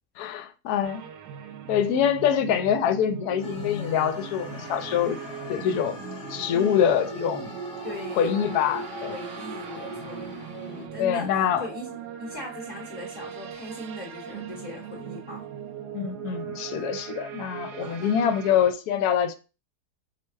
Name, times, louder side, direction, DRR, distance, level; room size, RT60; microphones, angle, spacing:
voice 1, 0.2-1.0 1.7-5.2 5.5-6.0 6.3-7.5 8.2-9.1 9.8-9.9 11.0-11.6 15.9-19.3, left 8 dB, 75° left, 1.1 m, -25 dB
sound 1, 0.8-18.7, right 7 dB, 80° right, 1.2 m, -39 dB
sound 2, 3.4-10.9, left 5 dB, 45° left, 0.7 m, -41 dB
voice 2, 6.5-7.2 7.8-11.3 11.6-15.5 16.7-16.9 17.8-18.2, left 2 dB, 30° left, 1.0 m, -40 dB
4.6 x 2.2 x 4.5 m
omnidirectional pair, 1.7 m